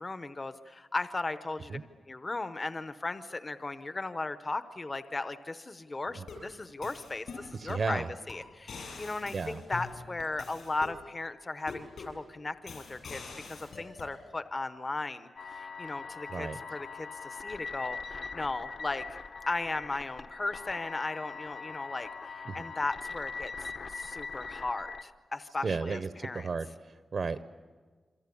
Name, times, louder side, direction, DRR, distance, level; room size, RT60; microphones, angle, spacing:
voice 1, 0.0-1.8 2.1-13.2 13.5-19.2 19.5-23.5 23.9-26.5, left 2 dB, 25° left, 11 dB, 0.8 m, -36 dB
sound 1, 6.1-6.5 6.8-7.9 8.3-8.4 8.7-11.0 11.7-12.2 12.7-14.1, left 4 dB, 70° left, 7.3 m, -44 dB
voice 2, 7.5-8.1 9.3-9.6 16.3-16.6 22.5-22.6 25.6-27.4, right 4 dB, 45° right, 12 dB, 0.7 m, -34 dB
sound 2, 15.4-25.0, left 4 dB, 50° left, 1.0 m, -42 dB
28.0 x 24.0 x 8.5 m, 1.5 s
wide cardioid pair, 160°, 0 cm